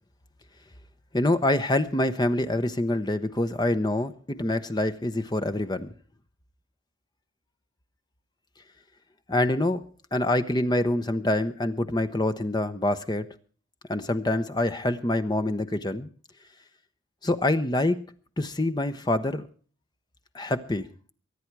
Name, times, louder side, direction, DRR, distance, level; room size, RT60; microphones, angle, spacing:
voice 1, 1.1-5.9 9.3-9.8 10.1-13.3 13.9-16.1 17.2-18.0 18.4-19.4 20.3-20.9, left 1 dB, 20° left, 9 dB, 0.8 m, -26 dB
23.5 x 9.6 x 4.7 m, 0.41 s
head